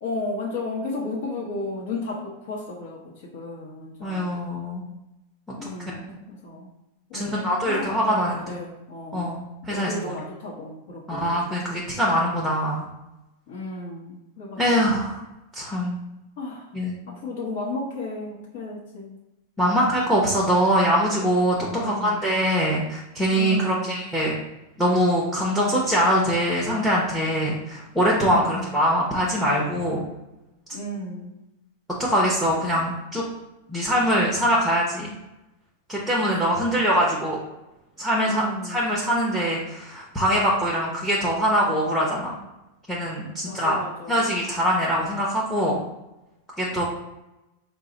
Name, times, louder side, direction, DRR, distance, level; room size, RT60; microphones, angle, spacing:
voice 1, 0.0-4.3 5.6-6.7 7.1-9.3 9.6-12.0 13.5-15.0 16.4-16.8 17.1-19.1 21.7-22.4 23.3-24.1 28.1-28.8 30.7-31.4 32.1-32.3 32.5-32.9 36.1-36.9 38.2-39.0 43.4-44.4 46.7-46.8, left 2 dB, 60° left, -4 dB, 0.9 m, -34 dB
voice 2, 4.0-4.8 5.5-5.7 7.1-8.4 9.1-10.1 11.1-12.9 14.6-15.2 15.5-16.0 16.7-16.9 19.6-24.3 24.8-30.0 32.0-33.3 33.7-35.1 35.9-37.4 38.0-42.4 42.9-43.8 44.1-45.8 46.6-46.8, equal, ahead, -3 dB, 0.7 m, -23 dB
4.5 x 2.0 x 3.9 m, 0.97 s
supercardioid pair, 145°, 0 cm